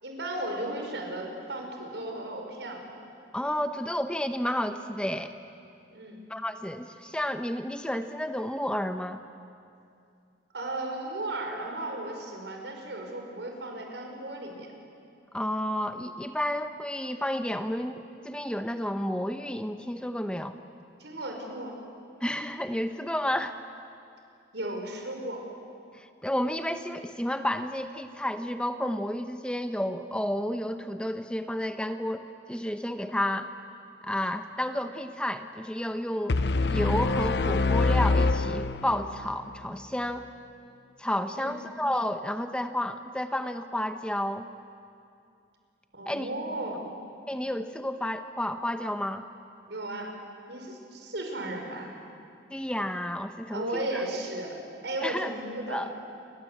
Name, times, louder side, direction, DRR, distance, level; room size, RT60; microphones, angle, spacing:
voice 1, 0.0-2.9 5.9-6.2 10.5-14.7 21.0-21.7 24.5-25.4 41.4-41.6 45.9-47.0 49.7-50.1 50.5-51.9 53.5-55.8, right 1 dB, 85° right, 2 dB, 5.4 m, -35 dB
voice 2, 3.3-5.3 6.3-9.2 15.3-20.5 22.2-23.6 25.9-33.5 34.0-36.4 36.7-40.3 41.0-44.5 46.1-46.3 47.3-49.2 52.5-54.0 55.0-55.3 55.7-55.9, left 1 dB, 5° left, 8 dB, 0.8 m, -31 dB
sound 1, 36.3-39.4, left 3 dB, 75° left, 0.8 m, -25 dB
29.5 x 24.0 x 8.2 m, 2.5 s
head